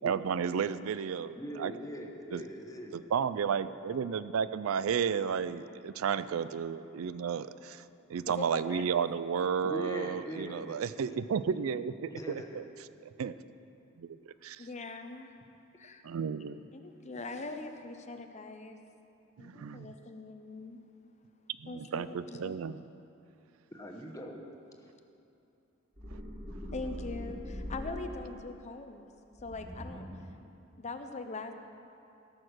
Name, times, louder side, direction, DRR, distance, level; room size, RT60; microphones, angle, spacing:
voice 1, 0.0-1.7 2.3-2.4 2.9-7.8 8.1-12.6 13.0-13.3 14.0-14.7 16.0-16.6 19.4-19.9 21.6-22.8, right 7 dB, 80° right, 14 dB, 0.4 m, -33 dB
voice 2, 1.3-3.0 9.6-10.8 12.1-12.5 23.7-24.4, equal, 15° left, 1 dB, 1.1 m, -41 dB
voice 3, 8.3-8.9 14.6-15.5 15.8-16.0 16.7-18.8 19.4-20.8 21.7-22.6 26.7-29.1 29.4-30.1 30.8-31.5, left 3 dB, 35° left, 7 dB, 0.6 m, -42 dB
sound 1, 26.0-28.4 29.4-30.3, equal, 40° right, 3.4 m, -42 dB
17.0 x 6.4 x 6.4 m, 2.9 s
head